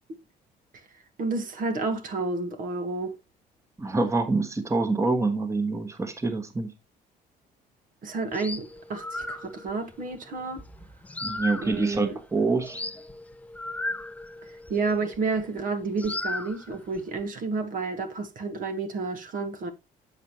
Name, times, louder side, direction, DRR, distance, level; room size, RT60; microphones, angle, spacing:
voice 1, 1.2-3.1 8.0-10.6 11.6-12.2 14.7-19.7, right 3 dB, 55° right, 1.4 m, -30 dB
voice 2, 3.8-6.7 11.2-12.8, right 3 dB, 15° right, 1.3 m, -26 dB
sound 1, 8.3-15.6 16.0-17.2, left 2 dB, 10° left, 0.5 m, -37 dB
8.3 x 7.2 x 3.0 m
cardioid pair, 110°, 17 cm